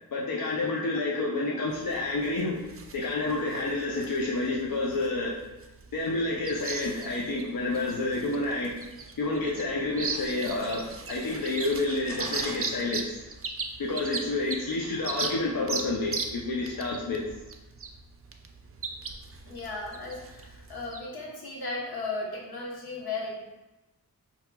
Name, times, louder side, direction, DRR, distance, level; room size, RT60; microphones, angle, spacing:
voice 1, 0.1-5.3 5.9-8.7 9.2-13.2 13.8-17.2, left 2 dB, 65° left, -4 dB, 0.6 m, -29 dB
sound 1, 1.7-21.0, right 4 dB, 40° right, 0.4 m, -38 dB
voice 2, 19.4-23.4, left 3 dB, 80° left, -3 dB, 1.0 m, -36 dB
5.6 x 2.9 x 2.2 m, 1.1 s
wide cardioid pair, 80°, 37 cm